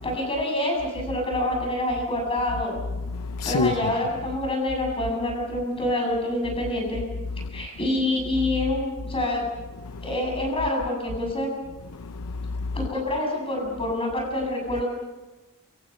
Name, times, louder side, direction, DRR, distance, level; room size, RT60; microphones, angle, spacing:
voice 1, 0.0-2.8 3.4-7.0 7.5-9.5 10.0-11.5 12.7-14.9, left 1 dB, 25° left, 7.9 m, -26 dB
voice 2, 3.1-4.0 7.4-7.7 9.8-10.1 11.9-12.8, left 4 dB, 90° left, 0.8 m, -29 dB
28.0 x 26.0 x 5.7 m
head